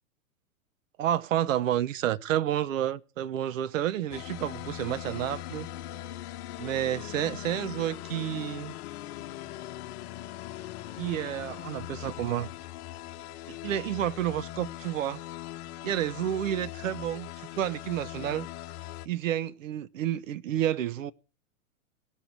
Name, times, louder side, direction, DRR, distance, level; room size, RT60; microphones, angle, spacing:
voice 1, 1.0-5.7 6.6-8.7 11.0-12.5 13.6-15.2 15.8-17.3 17.6-18.5 19.0-21.1, right 11 dB, 65° right, 1.0 m, -30 dB
sound 1, 4.1-19.1, left 14 dB, 50° left, 1.1 m, -40 dB
17.0 x 6.4 x 9.3 m
figure-of-eight pair, 105°, 43 cm